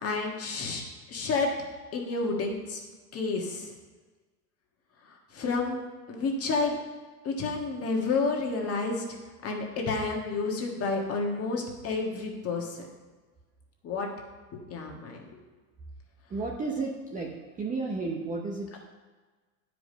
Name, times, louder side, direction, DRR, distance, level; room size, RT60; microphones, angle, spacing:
voice 1, 0.0-0.8 1.1-1.5 1.9-2.8 3.1-3.7 5.3-5.8 6.1-6.8 7.2-9.0 9.4-12.9 13.8-14.1 14.5-15.4, left 3 dB, 30° left, 0 dB, 1.5 m, -30 dB
voice 2, 16.3-17.3 17.6-18.8, right 3 dB, 15° right, -1 dB, 0.7 m, -32 dB
9.4 x 5.1 x 5.1 m, 1.4 s
supercardioid pair, 130°, 48 cm